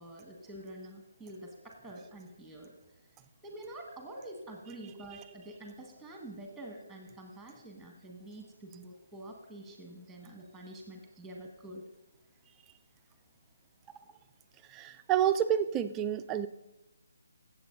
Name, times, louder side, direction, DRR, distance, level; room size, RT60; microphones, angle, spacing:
voice 1, 0.0-2.7 3.4-11.8, right 1 dB, ahead, 2 dB, 1.7 m, -47 dB
voice 2, 14.7-16.5, right 10 dB, 15° right, 10 dB, 0.4 m, -29 dB
16.0 x 7.5 x 4.0 m, 0.98 s
figure-of-eight pair, 150°, 0 cm